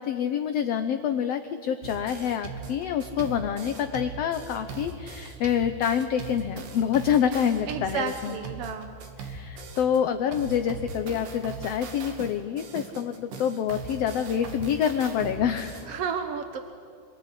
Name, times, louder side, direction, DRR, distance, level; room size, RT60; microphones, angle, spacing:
voice 1, 0.0-8.3 9.2-16.0, left 8 dB, 65° left, 8 dB, 1.7 m, -27 dB
sound 1, 1.8-10.0 10.3-15.9, right 3 dB, 85° right, 4.1 m, -39 dB
voice 2, 7.7-8.9 15.8-16.6, right 6 dB, 60° right, 6 dB, 1.8 m, -32 dB
27.0 x 21.5 x 10.0 m, 2.4 s
omnidirectional pair, 3.8 m